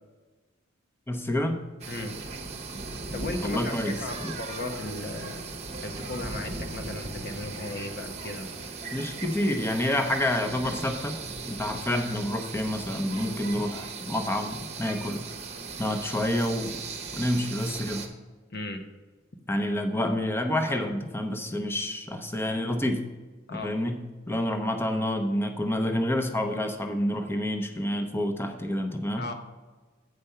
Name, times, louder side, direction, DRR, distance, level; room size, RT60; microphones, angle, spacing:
voice 1, 1.1-1.6 3.4-3.9 4.2-4.4 8.9-11.2 11.5-15.2 15.8-16.7 17.1-18.0 19.5-23.0 23.6-24.0 24.3-29.3, left 1 dB, 10° left, 5 dB, 0.8 m, -28 dB
sound 1, 1.8-18.1, right 4 dB, 35° right, 1.0 m, -38 dB
voice 2, 3.1-5.5 5.8-8.5 18.5-18.8 23.5-23.8 29.2-29.3, left 2 dB, 55° left, 5 dB, 0.8 m, -36 dB
8.1 x 5.1 x 5.6 m, 1.3 s
head